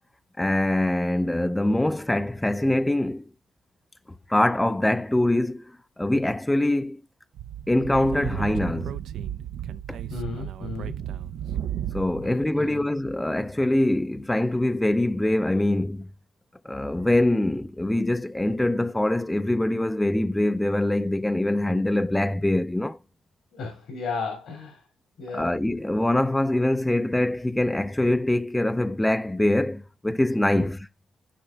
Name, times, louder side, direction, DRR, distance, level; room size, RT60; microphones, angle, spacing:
voice 1, 0.4-3.3 4.3-7.0 7.7-9.0 9.9-10.0 11.5-11.6 11.9-16.1 16.7-23.0 25.3-30.9, left 1 dB, 10° left, 0.4 m, -24 dB
Speech / Wind, 7.4-12.3, right 10 dB, 75° right, 0.4 m, -33 dB
voice 2, 10.1-11.0 12.2-12.8 23.5-24.8 25.2-25.6 30.5-30.7, left 4 dB, 80° left, 2.7 m, -34 dB
13.5 x 5.4 x 2.4 m
cardioid pair, 90°, 0 cm